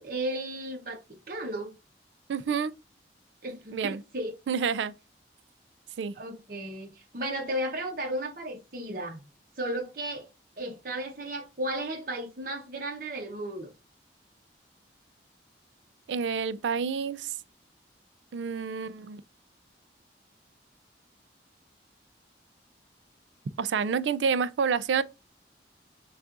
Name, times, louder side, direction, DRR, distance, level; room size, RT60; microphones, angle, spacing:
voice 1, 0.0-1.7 3.4-4.3 6.1-9.2 9.6-10.3 10.6-13.7, right 1 dB, 50° right, 0.8 m, -34 dB
voice 2, 2.3-2.8 3.7-4.0 4.5-4.9 6.0-6.2 16.1-17.3 18.3-19.2 23.6-25.0, right 6 dB, 85° right, 0.4 m, -28 dB
7.1 x 2.5 x 2.5 m
head